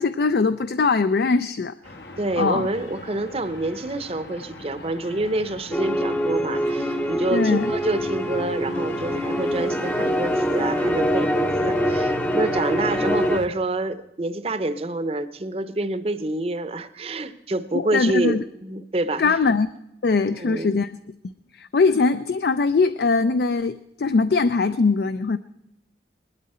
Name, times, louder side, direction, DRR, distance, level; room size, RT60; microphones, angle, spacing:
voice 1, 0.0-1.8 2.4-2.7 7.3-7.7 17.7-18.4 19.2-19.7 20.0-20.9 21.5-25.4, left 4 dB, 60° left, 12 dB, 0.4 m, -21 dB
sound 1, 1.8-13.5, left 1 dB, 80° left, 1.3 m, -38 dB
voice 2, 2.2-19.2 20.3-20.8, right 2 dB, 35° right, 12 dB, 0.7 m, -27 dB
sound 2, 5.7-13.4, equal, 10° left, 0.6 m, -24 dB
20.5 x 12.0 x 4.3 m, 0.90 s
head